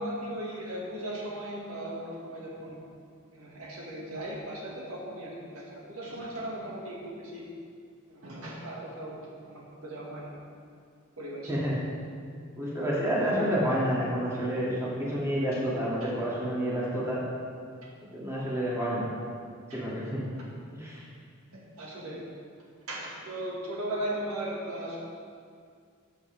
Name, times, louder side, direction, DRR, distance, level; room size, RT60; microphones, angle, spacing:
voice 1, 0.0-2.8 3.3-7.5 8.1-10.3 11.2-11.5 13.1-13.4 16.0-16.1 19.7-19.8 21.5-22.2 22.9-25.0, right 1 dB, 70° right, -4 dB, 2.0 m, -37 dB
voice 2, 11.5-11.8 12.6-17.2 18.1-19.1 19.7-20.2 20.8-21.0, equal, 15° right, -8 dB, 2.5 m, -29 dB
14.5 x 8.0 x 3.5 m, 2.2 s
head